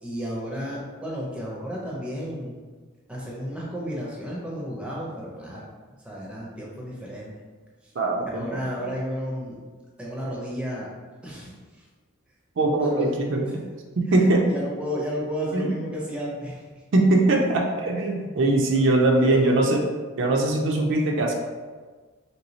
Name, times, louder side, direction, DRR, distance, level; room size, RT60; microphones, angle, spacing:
voice 1, 0.0-2.6 3.1-5.7 6.0-7.3 8.3-9.6 10.0-10.9 11.2-11.5 12.6-13.6 14.1-16.6 18.7-19.6, equal, 5° right, -5 dB, 0.5 m, -32 dB
voice 2, 8.0-8.6 12.6-13.5 14.0-14.5 15.5-15.7 16.9-19.8 20.2-21.3, right 2 dB, 60° right, 1 dB, 0.4 m, -21 dB
3.2 x 3.0 x 2.7 m, 1.4 s
head